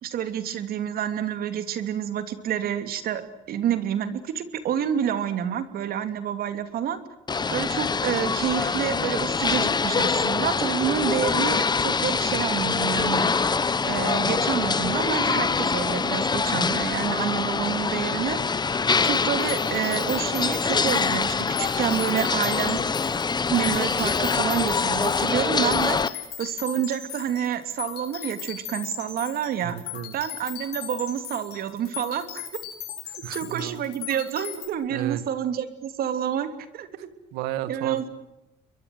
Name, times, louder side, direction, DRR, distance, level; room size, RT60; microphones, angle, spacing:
voice 1, 0.0-3.2 3.5-7.0 7.5-13.3 13.8-18.4 19.0-22.8 23.5-29.8 30.1-32.4 33.3-36.5 36.7-36.9 37.7-38.1, right 9 dB, 65° right, 10 dB, 3.0 m, -28 dB
sound 1, 7.3-26.1, left 5 dB, 25° left, 1.3 m, -24 dB
sound 2, 19.0-34.7, left 11 dB, 75° left, 7.8 m, -38 dB
voice 2, 29.6-30.1 33.1-33.8 34.9-35.2 37.3-38.1, right 12 dB, 90° right, 14 dB, 2.0 m, -33 dB
30.0 x 23.0 x 7.9 m, 0.89 s
cardioid pair, 95°, 17 cm